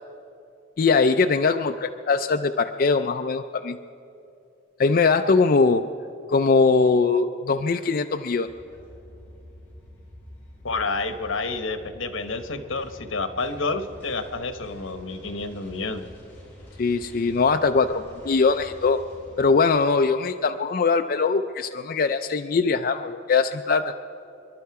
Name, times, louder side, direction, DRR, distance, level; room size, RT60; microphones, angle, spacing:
voice 1, 0.8-3.8 4.8-5.8 6.3-8.5 16.8-19.0 19.4-23.9, left 4 dB, 45° left, 6 dB, 0.4 m, -21 dB
sound 1, 8.5-19.4, equal, 10° left, 4.9 m, -47 dB
voice 2, 10.6-16.0, left 3 dB, 85° left, 9 dB, 1.1 m, -29 dB
27.0 x 11.5 x 4.7 m, 2.7 s
head